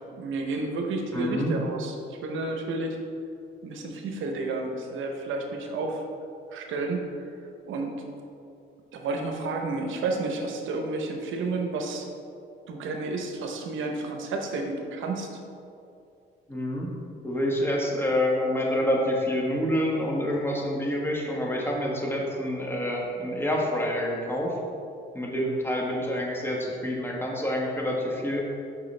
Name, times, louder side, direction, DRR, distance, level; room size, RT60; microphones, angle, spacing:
voice 1, 0.2-3.0 3.6-6.0 6.5-7.3 7.7-8.0 8.9-12.1 12.7-15.3, right 3 dB, 80° right, 3 dB, 0.8 m, -31 dB
voice 2, 1.1-1.5 16.5-16.9 17.2-24.6 25.1-28.5, left 1 dB, 10° left, -2 dB, 1.2 m, -27 dB
6.8 x 5.6 x 3.2 m, 2.5 s
cardioid pair, 90°, 20 cm